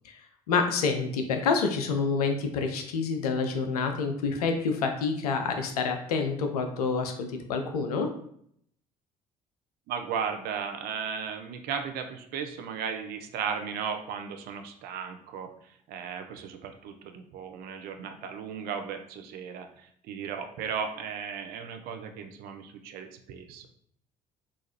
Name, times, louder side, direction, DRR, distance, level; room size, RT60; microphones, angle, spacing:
voice 1, 0.5-8.1, left 4 dB, 75° left, 5 dB, 0.5 m, -28 dB
voice 2, 9.9-23.7, right 6 dB, 50° right, 6 dB, 0.5 m, -36 dB
4.0 x 2.5 x 2.8 m, 0.67 s
figure-of-eight pair, 55°, 20 cm